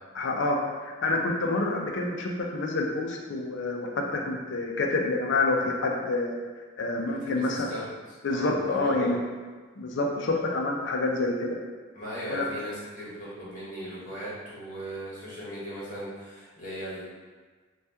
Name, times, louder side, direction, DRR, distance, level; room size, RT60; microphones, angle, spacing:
voice 1, 0.2-0.6 0.8-6.3 6.8-7.7 8.2-9.2 9.8-11.6 12.3-12.5, left 2 dB, 55° left, 1 dB, 0.4 m, -27 dB
voice 2, 7.1-9.1 11.9-17.0, equal, 40° left, -8 dB, 1.0 m, -38 dB
2.8 x 2.3 x 3.3 m, 1.4 s
head